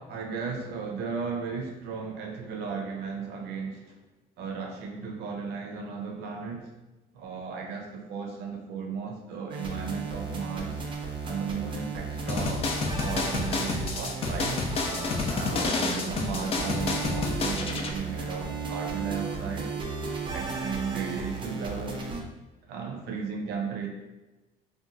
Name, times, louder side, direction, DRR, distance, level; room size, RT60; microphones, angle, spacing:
voice 1, 0.0-4.0 4.4-6.7 7.1-10.8 11.2-12.7 13.0-14.6 15.3-19.7 20.3-22.1 22.7-23.9, right 5 dB, 80° right, 2 dB, 0.5 m, -35 dB
sound 1, 9.5-22.2, right 4 dB, 30° right, 0.5 m, -35 dB
sound 2, 12.3-17.9, left 3 dB, 35° left, 0.4 m, -29 dB
2.9 x 2.2 x 2.5 m, 1.1 s
cardioid pair, 110°, 17 cm